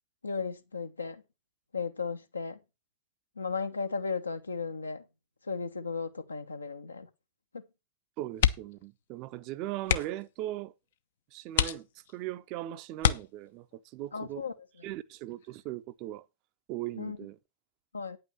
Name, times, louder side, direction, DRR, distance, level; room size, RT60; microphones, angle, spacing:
voice 1, 0.2-1.2 1.7-2.6 3.4-5.0 5.5-7.1 7.5-7.6 14.1-14.9 17.0-17.2 17.9-18.2, left 5 dB, 75° left, 1.1 m, -35 dB
voice 2, 8.2-10.7 11.3-14.4 14.8-16.3 16.7-17.4, right 14 dB, 45° right, 0.7 m, -39 dB
sound 1, 8.3-8.9 9.2-9.4 9.8-10.3 10.9-11.0 11.5-12.3 13.0-13.8 15.3-15.6 16.0-16.1, left 9 dB, 60° left, 0.7 m, -28 dB
9.5 x 5.8 x 6.8 m
figure-of-eight pair, 90°, 0 cm